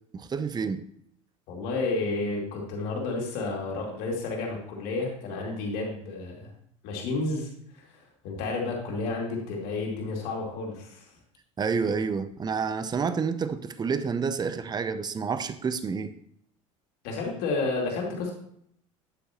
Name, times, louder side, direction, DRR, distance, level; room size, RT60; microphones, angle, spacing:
voice 1, 0.1-0.8 11.6-16.1, right 5 dB, 25° right, 0.6 m, -29 dB
voice 2, 1.5-6.5 6.8-7.5 7.7-7.8 8.2-11.1 17.0-18.3, left 3 dB, 65° left, 2.6 m, -31 dB
9.0 x 8.0 x 3.0 m
hypercardioid pair, 70°, 17 cm